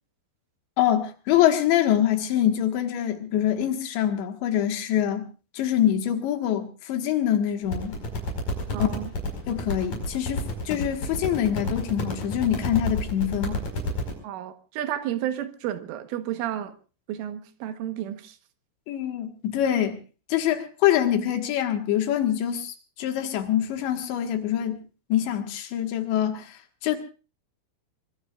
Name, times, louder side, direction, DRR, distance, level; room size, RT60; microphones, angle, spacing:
voice 1, 0.8-5.3 5.5-8.0 8.8-8.9 9.5-13.6 18.9-20.0 20.3-24.8 25.1-27.0, left 11 dB, 70° left, 3.5 m, -25 dB
sound 1, 7.7-14.1, left 2 dB, 40° left, 6.3 m, -30 dB
voice 2, 8.7-9.1 14.2-16.7 17.1-18.4, right 11 dB, 75° right, 3.7 m, -31 dB
24.0 x 23.5 x 2.5 m
omnidirectional pair, 5.9 m